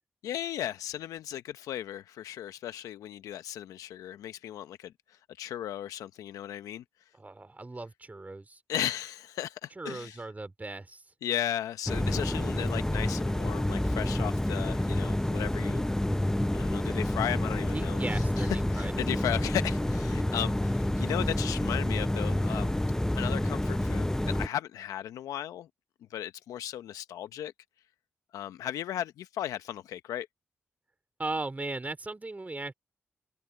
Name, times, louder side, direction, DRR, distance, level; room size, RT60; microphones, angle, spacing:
voice 1, 0.2-6.8 8.7-10.2 11.2-15.8 16.3-22.7 23.2-25.7 26.1-27.5 28.3-30.3, left 11 dB, 80° left, 0.8 m, -36 dB
voice 2, 7.2-8.6 9.8-11.0 17.7-18.9 31.2-32.7, right 2 dB, 25° right, 3.4 m, -37 dB
sound 1, 11.9-24.5, left 1 dB, 10° left, 0.7 m, -29 dB
hypercardioid pair, 40°, 6 cm